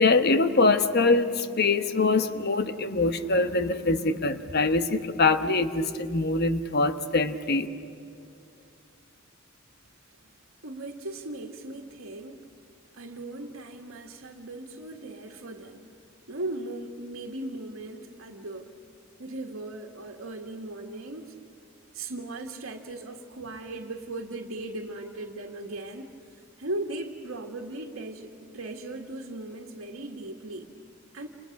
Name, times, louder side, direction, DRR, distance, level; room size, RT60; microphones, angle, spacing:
voice 1, 0.0-7.7, left 3 dB, 50° left, 9 dB, 1.1 m, -23 dB
voice 2, 10.6-12.4 12.9-15.9 16.3-18.7 19.2-21.4 21.9-26.2 26.6-30.7 31.1-31.3, right 2 dB, 75° right, 0 dB, 1.7 m, -38 dB
29.5 x 29.0 x 5.9 m, 2.6 s
head